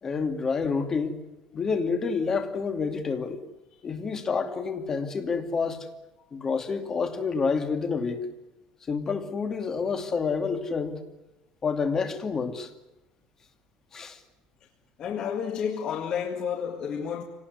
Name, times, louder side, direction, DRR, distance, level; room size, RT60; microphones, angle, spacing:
voice 1, 0.0-1.2 1.5-3.4 3.8-5.9 6.3-8.2 8.9-11.0 11.6-12.7 13.9-14.2, left 5 dB, 25° left, 2.5 m, -28 dB
voice 2, 15.0-17.2, left 7 dB, 40° left, 2.0 m, -30 dB
25.5 x 19.0 x 9.7 m
cardioid pair, 150°, 2 cm